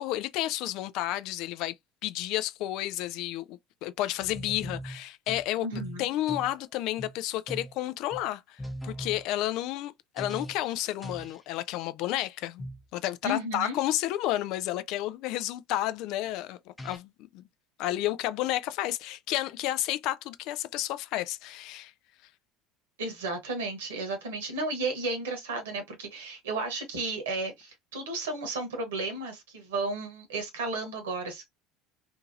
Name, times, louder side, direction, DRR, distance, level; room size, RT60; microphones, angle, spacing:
voice 1, 0.0-1.7 2.0-17.4 17.8-21.9, left 14 dB, 55° left, 0.3 m, -31 dB
sound 1, 4.2-5.5 5.7-6.6 7.0-7.2 7.5-7.8 8.1-8.3 8.6-9.3 10.2-10.8 11.0-11.4 12.6-12.8 16.2-16.3 16.8-17.0, equal, 10° left, 0.7 m, -40 dB
voice 2, 5.6-6.1 13.2-13.8 23.0-31.5, right 2 dB, 75° right, 1.0 m, -33 dB
2.7 x 2.5 x 2.6 m
figure-of-eight pair, 65°, 0 cm